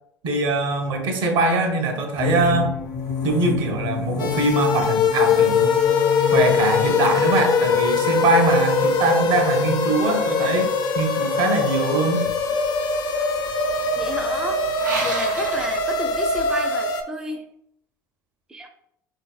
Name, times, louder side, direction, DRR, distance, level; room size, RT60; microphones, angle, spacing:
voice 1, 0.2-2.7 3.2-5.7 6.3-12.3, right 3 dB, 55° right, 4 dB, 0.8 m, -22 dB
sound 1, 2.2-11.8, left 7 dB, 70° left, 0.8 m, -32 dB
sound 2, 4.2-17.0, left 5 dB, 45° left, 0.5 m, -22 dB
sound 3, 12.2-16.6, right 2 dB, 90° right, 0.7 m, -34 dB
voice 2, 14.0-17.4 18.5-18.7, right 1 dB, 10° right, 3 dB, 0.4 m, -32 dB
3.9 x 2.6 x 2.3 m, 0.75 s
hypercardioid pair, 70°, 10 cm